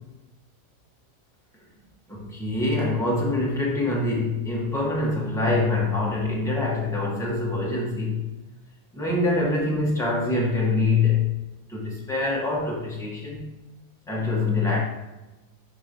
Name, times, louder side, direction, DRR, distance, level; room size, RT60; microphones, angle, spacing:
voice 1, 2.1-8.2 8.9-11.3 11.7-13.4 14.1-14.8, left 3 dB, ahead, -4 dB, 1.5 m, -24 dB
11.0 x 4.0 x 3.2 m, 1.1 s
omnidirectional pair, 1.7 m